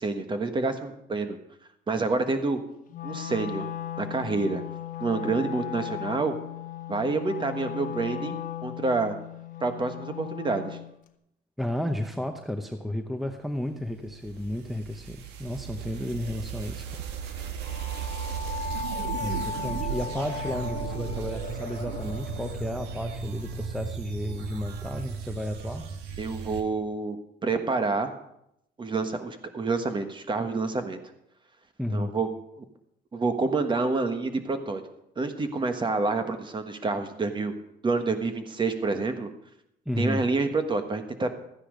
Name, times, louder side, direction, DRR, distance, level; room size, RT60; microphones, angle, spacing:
voice 1, 0.0-1.4 1.9-2.6 3.0-3.7 4.0-4.6 5.0-6.3 6.9-9.1 9.6-10.8 26.2-28.1 28.8-31.0 31.9-32.3 32.6-32.7 33.1-34.8 35.2-37.5 37.8-39.3 40.0-41.3, right 3 dB, 30° right, 8 dB, 1.4 m, -28 dB
Wind instrument woodwind instrument, 2.9-10.9, left 11 dB, 55° left, 1.0 m, -37 dB
voice 2, 11.6-16.9 17.3-17.5 19.2-25.9 31.8-32.2 39.9-40.2, left 1 dB, ahead, 7 dB, 0.8 m, -32 dB
sound 1, 13.8-26.6, right 7 dB, 85° right, 1.3 m, -36 dB
sound 2, 17.6-22.8, left 4 dB, 35° left, 1.2 m, -37 dB
13.5 x 9.8 x 5.1 m, 0.80 s
cardioid pair, 110°, 17 cm